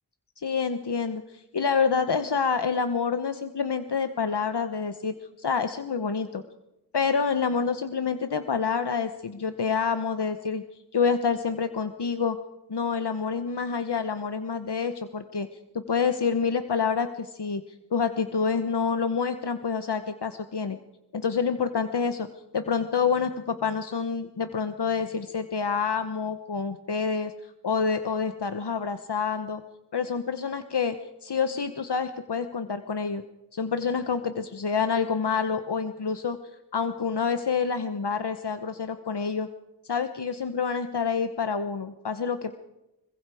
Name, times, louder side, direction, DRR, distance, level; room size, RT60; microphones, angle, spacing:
voice 1, 0.4-6.4 6.9-10.6 10.9-12.4 12.7-15.5 15.7-17.6 17.9-20.8 21.1-22.3 22.5-29.6 29.9-31.0 31.2-33.2 33.5-36.4 36.7-39.5 39.8-42.6, left 5 dB, 75° left, 9 dB, 1.2 m, -27 dB
26.0 x 23.5 x 4.9 m, 0.97 s
wide cardioid pair, 65°, 41 cm